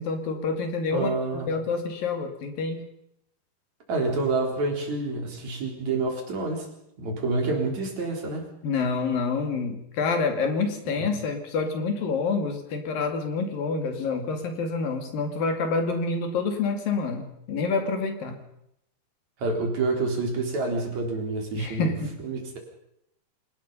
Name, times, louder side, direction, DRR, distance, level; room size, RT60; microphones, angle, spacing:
voice 1, 0.0-1.1 1.5-2.8 8.6-18.4 21.6-22.1, left 4 dB, 65° left, 6 dB, 4.0 m, -27 dB
voice 2, 0.9-1.5 3.9-6.7 7.0-8.4 10.9-11.1 19.4-21.9 22.2-22.6, right 3 dB, 45° right, 2 dB, 5.0 m, -28 dB
27.0 x 19.0 x 5.5 m, 0.76 s
omnidirectional pair, 4.5 m